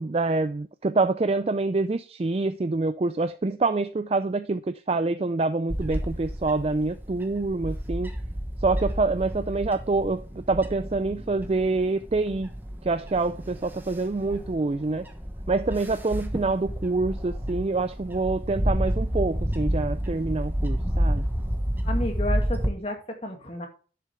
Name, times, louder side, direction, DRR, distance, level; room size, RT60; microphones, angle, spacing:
voice 1, 0.0-8.1 8.6-12.5 12.8-15.1 15.5-21.2, right 3 dB, 35° right, 0.4 m, -26 dB
Bird / Wind, 5.7-22.7, equal, 10° right, 1.1 m, -30 dB
voice 2, 21.8-23.7, left 1 dB, 35° left, 2.1 m, -32 dB
11.0 x 6.8 x 3.3 m
head